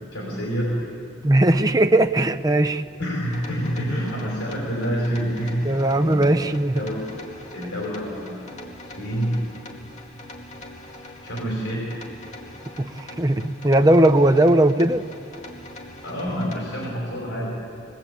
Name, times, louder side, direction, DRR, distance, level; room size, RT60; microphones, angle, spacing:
voice 1, 0.1-0.7 3.0-6.5 6.7-7.0 7.5-9.4 11.2-11.9 16.0-17.5, equal, 85° left, -3 dB, 5.4 m, -28 dB
voice 2, 1.2-2.8 5.6-6.8 12.8-15.1, right 1 dB, 20° right, 7 dB, 0.7 m, -18 dB
sound 1, 3.2-16.9, left 1 dB, 35° left, 2.5 m, -42 dB
23.0 x 21.0 x 8.6 m, 2.4 s
head